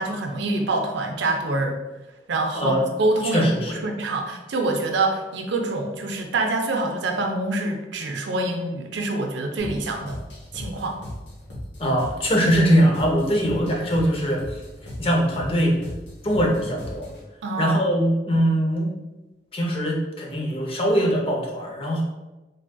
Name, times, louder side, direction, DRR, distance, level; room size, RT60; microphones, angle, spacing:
voice 1, 0.0-1.8 2.3-10.2 10.5-11.0 17.4-17.9, right 2 dB, 75° right, 3 dB, 0.4 m, -25 dB
voice 2, 3.3-3.8 11.8-14.4 15.0-15.7 16.2-17.1 17.6-18.9 19.5-22.0, equal, 30° left, -1 dB, 0.5 m, -21 dB
sound 1, 9.6-17.3, left 1 dB, 75° left, 0.9 m, -38 dB
3.4 x 2.5 x 2.2 m, 1.1 s
head